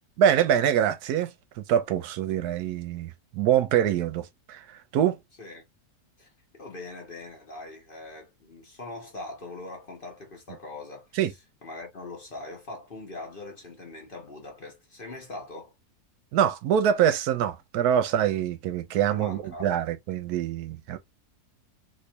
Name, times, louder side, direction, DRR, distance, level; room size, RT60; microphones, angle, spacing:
voice 1, 0.2-5.2 11.1-11.3 16.3-21.0, right 9 dB, 80° right, 1.1 m, -25 dB
voice 2, 6.2-11.1 11.6-15.7 19.1-19.7, left 2 dB, 40° left, 1.1 m, -41 dB
3.2 x 3.0 x 2.7 m
omnidirectional pair, 1.7 m